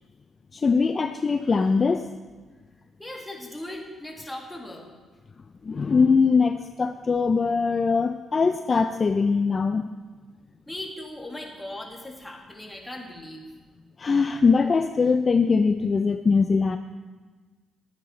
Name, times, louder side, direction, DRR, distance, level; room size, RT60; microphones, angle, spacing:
voice 1, 0.5-2.1 5.6-9.9 14.0-16.8, left 4 dB, 35° left, 8 dB, 0.4 m, -22 dB
voice 2, 3.0-4.9 10.7-13.5, left 1 dB, 10° left, -1 dB, 2.1 m, -38 dB
12.5 x 9.7 x 4.4 m, 1.4 s
cardioid pair, 90°, 0 cm